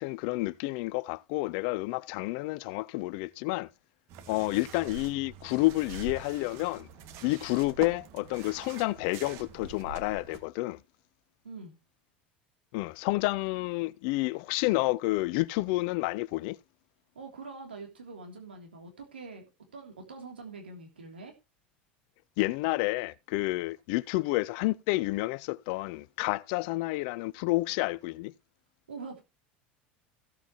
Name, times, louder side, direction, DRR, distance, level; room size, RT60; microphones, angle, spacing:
voice 1, 0.0-3.7 4.3-6.9 7.2-10.8 12.7-16.6 22.4-28.3, left 21 dB, 65° left, 0.5 m, -30 dB
sound 1, 4.1-10.4, right 6 dB, 60° right, 2.2 m, -45 dB
voice 2, 11.4-11.8 17.1-19.4 19.7-21.3 28.9-29.2, right 4 dB, 90° right, 3.2 m, -44 dB
16.5 x 8.1 x 3.1 m
hypercardioid pair, 80°, 5 cm